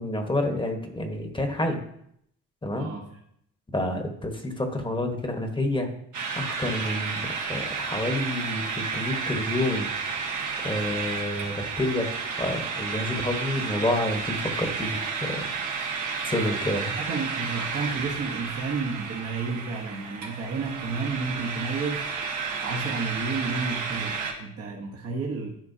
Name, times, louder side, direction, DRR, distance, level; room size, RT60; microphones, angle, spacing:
voice 1, 0.0-1.8 2.6-2.9 3.7-5.9 6.4-9.9 10.6-12.1 12.4-15.5 16.2-16.9, left 1 dB, 15° left, 4 dB, 1.2 m, -29 dB
voice 2, 2.7-3.1 16.7-22.1 22.6-25.5, right 4 dB, 50° right, -1 dB, 1.2 m, -31 dB
sound 1, 6.1-24.3, right 5 dB, 80° right, 1.6 m, -32 dB
10.5 x 5.3 x 2.8 m, 0.73 s
cardioid pair, 90°, 30 cm